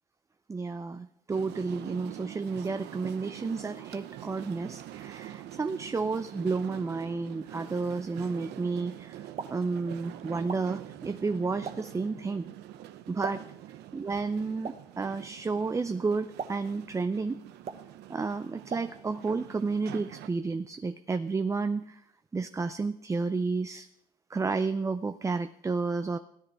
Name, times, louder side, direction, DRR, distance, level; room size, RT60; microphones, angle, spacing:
voice 1, 0.5-12.5 13.1-13.4 13.9-17.4 18.1-22.0 22.3-23.9 24.3-26.2, right 4 dB, 20° right, 10 dB, 0.5 m, -31 dB
sound 1, 1.3-20.3, right 13 dB, 80° right, 0.8 m, -45 dB
Explosion, 9.1-19.4, right 6 dB, 40° right, 1.1 m, -45 dB
16.5 x 10.0 x 4.7 m, 0.77 s
cardioid pair, 110°, 17 cm